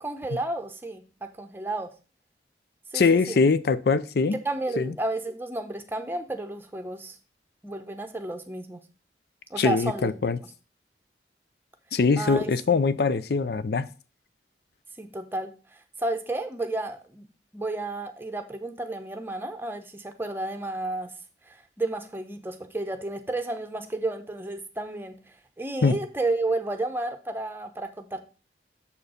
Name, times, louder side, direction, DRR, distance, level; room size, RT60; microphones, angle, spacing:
voice 1, 0.0-1.9 2.9-3.4 4.3-7.2 7.6-8.8 9.5-10.3 12.2-13.0 15.0-17.3 17.5-21.1 21.5-28.2, right 2 dB, 10° right, 0.8 m, -32 dB
voice 2, 2.9-4.4 4.8-4.9 9.6-10.4 11.9-13.9 25.8-26.0, left 4 dB, 60° left, 0.5 m, -22 dB
7.0 x 4.4 x 5.0 m
head